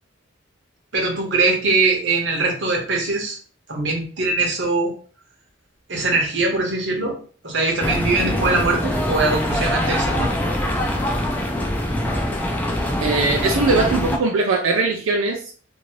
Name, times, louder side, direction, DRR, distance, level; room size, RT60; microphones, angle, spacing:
voice 1, 0.9-3.4 3.7-4.9 5.9-7.2 7.4-10.3, right 3 dB, 60° right, 0 dB, 0.9 m, -21 dB
sound 1, 7.8-14.2, left 1 dB, 10° left, 0.4 m, -23 dB
voice 2, 13.0-15.5, right 3 dB, 85° right, 0 dB, 0.5 m, -20 dB
2.6 x 2.6 x 3.0 m, 0.42 s
head